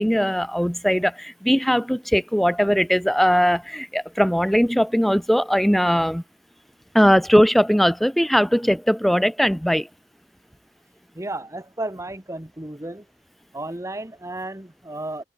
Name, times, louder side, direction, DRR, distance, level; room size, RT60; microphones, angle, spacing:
voice 1, 0.0-6.2 6.9-9.9, equal, ahead, 0.5 m, -19 dB
voice 2, 11.1-13.1 13.5-15.2, right 2 dB, 15° right, 1.5 m, -33 dB
head